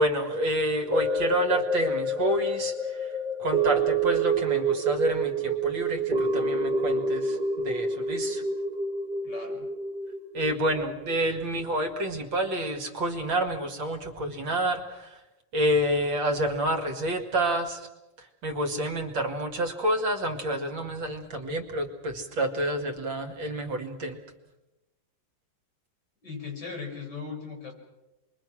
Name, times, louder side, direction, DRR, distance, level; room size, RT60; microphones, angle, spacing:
voice 1, 0.0-3.1 3.4-8.4 10.3-15.2 15.5-17.9 18.2-24.2, right 1 dB, 65° right, 5 dB, 2.8 m, -28 dB
sound 1, 0.9-11.3 11.7-11.8, right 2 dB, 30° right, 0.9 m, -28 dB
voice 2, 9.2-9.7 26.2-27.7, left 5 dB, 55° left, 1 dB, 6.8 m, -38 dB
28.0 x 23.0 x 6.3 m, 1.0 s
omnidirectional pair, 2.2 m